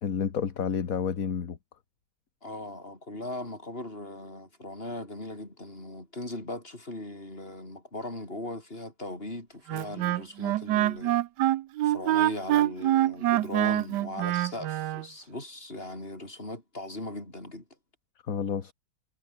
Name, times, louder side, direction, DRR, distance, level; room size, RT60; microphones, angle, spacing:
voice 1, 0.0-1.6 18.3-18.7, left 7 dB, 50° left, 1.8 m, -30 dB
voice 2, 2.4-11.2 11.8-17.6, left 1 dB, 30° left, 6.0 m, -39 dB
Wind instrument woodwind instrument, 9.7-15.0, right 14 dB, 75° right, 1.2 m, -25 dB
omnidirectional pair, 2.0 m